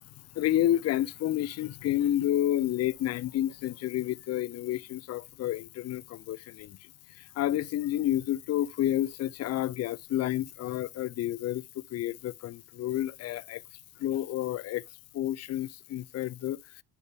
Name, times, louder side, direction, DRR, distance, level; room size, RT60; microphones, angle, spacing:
voice 1, 0.4-6.7 7.4-11.6 11.9-13.6 14.0-14.8 15.1-16.8, left 13 dB, 40° left, 0.4 m, -30 dB
10.0 x 3.8 x 3.4 m
supercardioid pair, 75°, 39 cm